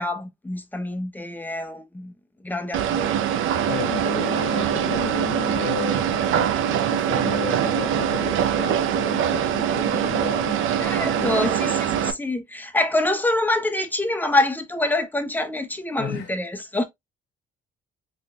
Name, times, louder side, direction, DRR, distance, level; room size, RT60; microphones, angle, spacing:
voice 1, 0.0-2.1 2.4-3.2 10.8-16.8, left 1 dB, 10° left, 0.8 m, -26 dB
sound 1, 2.7-12.1, right 9 dB, 85° right, 0.6 m, -23 dB
voice 2, 3.7-10.6 11.1-11.4 16.0-16.3, left 7 dB, 75° left, 0.9 m, -33 dB
3.8 x 3.8 x 2.4 m
cardioid pair, 90°, 20 cm